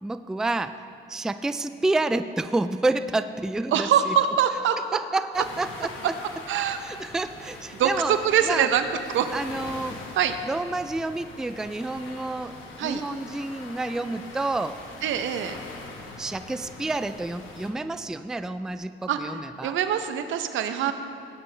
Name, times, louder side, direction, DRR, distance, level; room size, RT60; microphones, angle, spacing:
voice 1, 0.0-0.8 1.1-4.1 4.9-6.2 6.8-8.1 8.4-8.7 9.3-10.0 10.4-12.5 12.8-14.8 16.2-19.8 20.8-20.9, right 2 dB, 5° right, 11 dB, 0.3 m, -29 dB
voice 2, 3.7-4.8 6.0-6.1 6.5-6.8 7.7-9.3 10.1-10.4 12.8-13.0 15.0-15.5 19.1-20.9, right 9 dB, 80° right, 9 dB, 0.8 m, -24 dB
sound 1, 5.3-17.7, left 3 dB, 80° left, 1.4 m, -43 dB
17.0 x 8.9 x 3.3 m, 2.7 s
cardioid pair, 90°, 20 cm